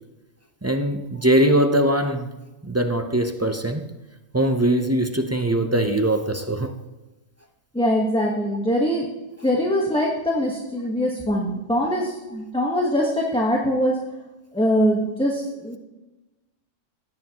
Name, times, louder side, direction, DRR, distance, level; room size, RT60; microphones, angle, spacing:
voice 1, 0.6-2.3 2.6-3.9 4.3-6.7, right 1 dB, 20° right, 6 dB, 0.4 m, -21 dB
voice 2, 7.7-9.1 9.4-14.0 14.5-15.8, equal, 5° left, -2 dB, 1.1 m, -22 dB
16.5 x 9.5 x 2.9 m, 1.1 s
omnidirectional pair, 1.3 m